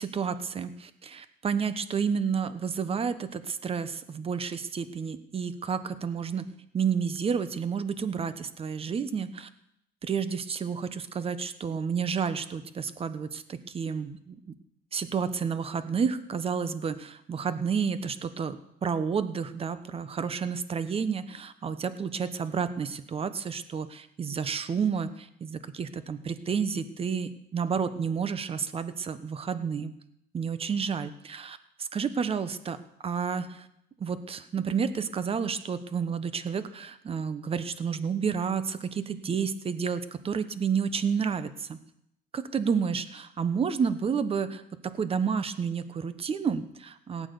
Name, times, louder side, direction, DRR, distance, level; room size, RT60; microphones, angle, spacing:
voice 1, 0.0-6.5 6.7-9.5 10.0-14.4 14.9-29.9 30.3-32.8 33.0-33.7 34.0-41.8 42.3-44.6 44.9-47.3, right 6 dB, 35° right, 12 dB, 1.1 m, -30 dB
17.0 x 8.8 x 7.0 m, 0.77 s
cardioid pair, 110°, 17 cm